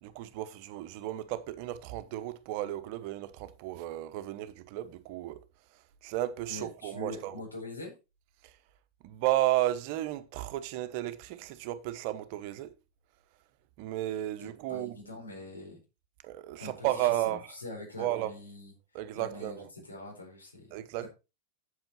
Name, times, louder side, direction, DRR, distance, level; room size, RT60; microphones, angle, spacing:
voice 1, 0.0-5.4 6.0-7.3 8.4-8.5 9.0-12.7 13.8-15.0 16.2-17.5 18.0-18.3 18.9-19.7 20.7-21.1, right 14 dB, 45° right, 1.0 m, -33 dB
voice 2, 6.5-7.9 14.4-15.8 16.6-18.7 19.1-20.7, left 1 dB, 80° left, 4.4 m, -43 dB
8.0 x 8.0 x 4.2 m
figure-of-eight pair, 90°, 0 cm